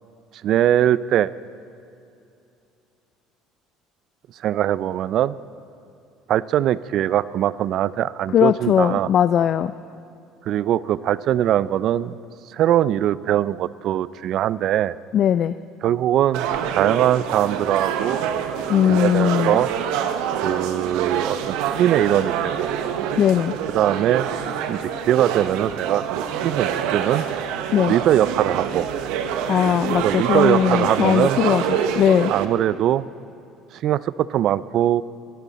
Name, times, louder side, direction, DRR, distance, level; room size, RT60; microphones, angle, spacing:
voice 1, 0.4-1.3 4.4-5.4 6.3-9.1 10.5-12.2 12.5-14.9 15.8-16.5 16.7-18.2 18.9-19.7 20.4-22.7 23.7-24.3 24.7-27.2 27.9-28.9 30.0-31.4 32.3-33.0 33.7-35.0, right 11 dB, 50° right, 18 dB, 0.4 m, -21 dB
voice 2, 8.3-9.7 15.1-15.6 18.7-19.6 23.2-23.6 27.7-27.9 29.5-32.3, left 9 dB, 40° left, 13 dB, 0.3 m, -19 dB
sound 1, 16.3-32.4, right 8 dB, 80° right, 1.0 m, -26 dB
23.0 x 14.0 x 4.1 m, 2.7 s
cardioid pair, 150°, 0 cm